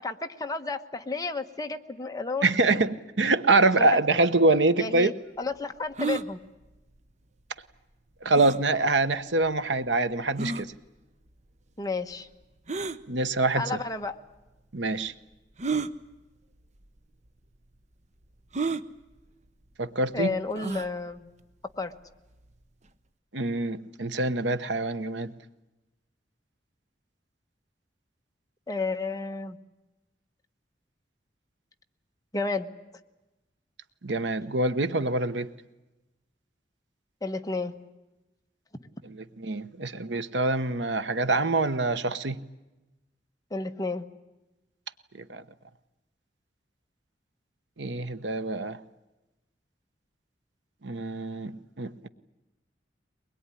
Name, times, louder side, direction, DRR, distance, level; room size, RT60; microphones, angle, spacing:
voice 1, 0.0-2.5 3.8-4.0 4.8-6.4 11.8-12.3 13.5-14.2 20.1-21.3 21.8-21.9 28.7-29.6 32.3-32.7 37.2-37.7 43.5-44.0, left 3 dB, 20° left, 1.2 m, -31 dB
voice 2, 2.4-5.1 8.2-10.7 13.1-13.6 14.7-15.1 19.8-20.3 23.3-25.3 34.0-35.5 39.0-42.4 45.3-45.4 47.8-48.8 50.8-52.1, right 2 dB, 90° right, 1.1 m, -25 dB
sound 1, 6.0-6.3 8.3-8.6 9.4-9.5 10.4-10.6 12.7-13.0 14.0-14.1 15.6-15.9 16.8-17.0 17.3-17.4 18.5-18.8 20.5-20.9, right 4 dB, 40° right, 0.9 m, -30 dB
23.0 x 21.0 x 10.0 m
head